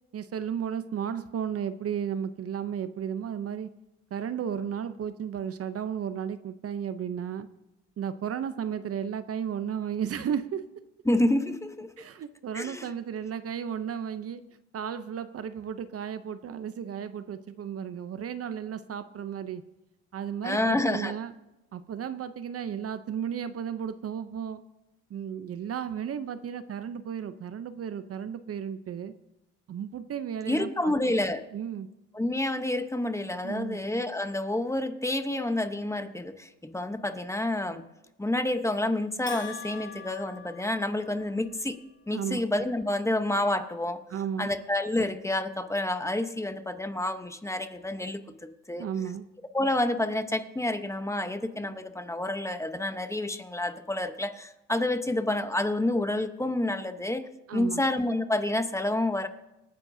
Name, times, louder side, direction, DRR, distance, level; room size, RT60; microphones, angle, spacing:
voice 1, 0.1-3.7 4.1-7.5 8.0-10.7 12.0-14.4 14.7-19.6 20.1-21.3 21.7-24.6 25.1-29.1 29.7-31.1 31.5-31.9 33.4-33.8 42.1-42.4 44.1-44.5 48.8-49.3 57.5-57.8, right 8 dB, 50° right, 12 dB, 0.7 m, -34 dB
voice 2, 11.1-11.9 12.5-12.9 20.4-21.1 30.5-31.4 32.1-37.9 38.2-41.8 42.1-44.0 44.4-48.8 49.5-57.2 57.5-59.3, left 1 dB, 10° left, 8 dB, 0.9 m, -29 dB
Bell, 39.3-41.4, left 5 dB, 40° left, 2.7 m, -42 dB
26.0 x 9.7 x 2.7 m, 0.94 s
cardioid pair, 90°, 30 cm